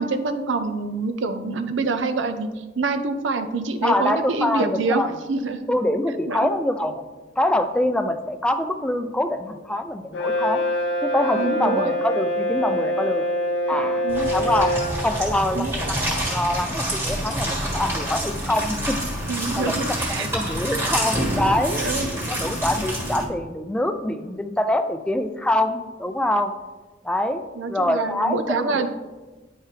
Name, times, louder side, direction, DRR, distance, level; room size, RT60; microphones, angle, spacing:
voice 1, 0.0-5.7 6.3-6.5 11.4-11.9 13.7-14.3 15.5-15.7 19.3-20.3 21.8-22.1 27.6-28.9, right 3 dB, 90° right, 9 dB, 0.6 m, -26 dB
voice 2, 3.8-5.1 5.7-7.1 7.4-10.6 11.0-13.3 13.7-14.0 14.3-14.7 15.0-19.0 19.6-21.9 22.3-26.5 27.0-27.4 27.7-28.9, left 1 dB, 5° left, 7 dB, 0.3 m, -24 dB
Brass instrument, 10.1-15.0, equal, 75° left, 0.7 m, -24 dB
sound 1, 14.1-23.2, equal, 15° right, 1.5 m, -27 dB
9.7 x 4.6 x 3.2 m, 1.2 s
head